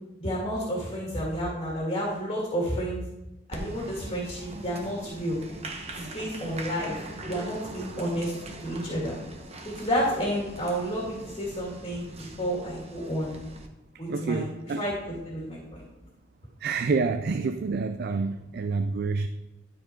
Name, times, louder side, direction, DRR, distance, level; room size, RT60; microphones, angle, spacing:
voice 1, 0.2-3.0 3.5-5.4 5.9-7.0 7.2-8.3 8.6-9.2 9.7-13.3 14.0-15.8, equal, 30° left, 2.2 m, -31 dB
Applause, 3.5-13.7, right 1 dB, 35° right, 0.9 m, -41 dB
voice 2, 14.1-14.8 16.6-19.3, right 4 dB, 55° right, 0.4 m, -28 dB
12.5 x 4.5 x 4.5 m
head